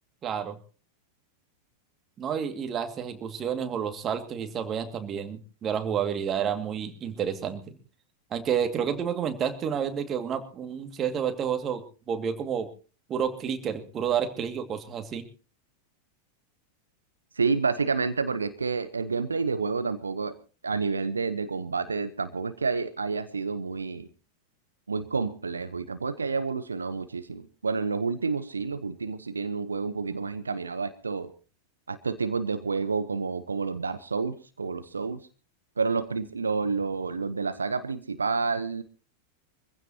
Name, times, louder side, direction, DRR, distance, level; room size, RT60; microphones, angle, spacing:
voice 1, 0.2-0.6 2.2-7.7 8.3-11.8 12.1-12.7 13.1-15.3, right 8 dB, 25° right, 8 dB, 2.3 m, -30 dB
voice 2, 17.3-20.3 20.6-24.1 24.9-31.3 31.9-35.2 35.8-38.8, right 4 dB, 75° right, 12 dB, 1.0 m, -29 dB
24.0 x 15.5 x 2.9 m, 0.36 s
figure-of-eight pair, 90°, 0 cm